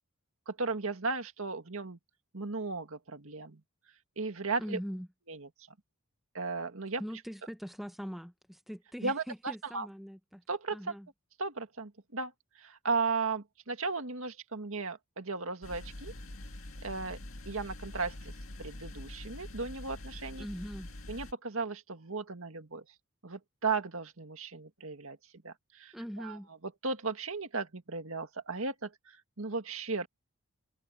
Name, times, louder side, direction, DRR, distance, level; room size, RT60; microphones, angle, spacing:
voice 1, 0.5-2.0 2.3-3.6 4.2-4.8 5.3-5.5 6.3-7.0 9.0-9.9 10.5-11.0 11.4-16.1 16.8-17.2 17.5-18.3 18.6-20.5 21.1-22.8 23.2-25.2 25.4-30.1, right 4 dB, 65° right, 2.0 m, -36 dB
voice 2, 4.6-5.1 7.0-10.4 10.7-11.1 20.4-20.9 25.9-26.5, equal, ahead, 0.9 m, -41 dB
sound 1, 15.6-21.3, left 1 dB, 65° left, 2.2 m, -45 dB
head